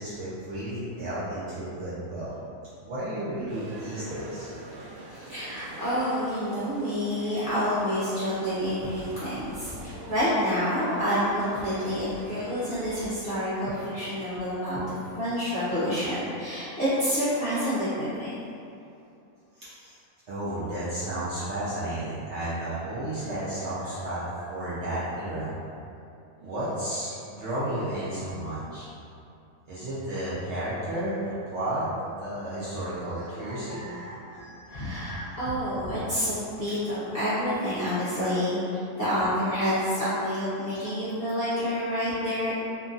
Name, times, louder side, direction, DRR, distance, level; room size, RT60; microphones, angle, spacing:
voice 1, 0.0-2.3 2.8-5.2 12.7-12.9 19.6-20.0 20.3-25.5 26.4-28.9 29.7-35.4 40.8-40.9, right 1 dB, 65° right, -10 dB, 0.7 m, -33 dB
sound 1, 3.5-13.0, right 1 dB, 85° right, 1.1 m, -44 dB
voice 2, 5.1-14.8 15.2-18.3 34.7-42.5, equal, 50° left, -14 dB, 0.6 m, -28 dB
2.8 x 2.6 x 2.4 m, 2.6 s
omnidirectional pair, 1.6 m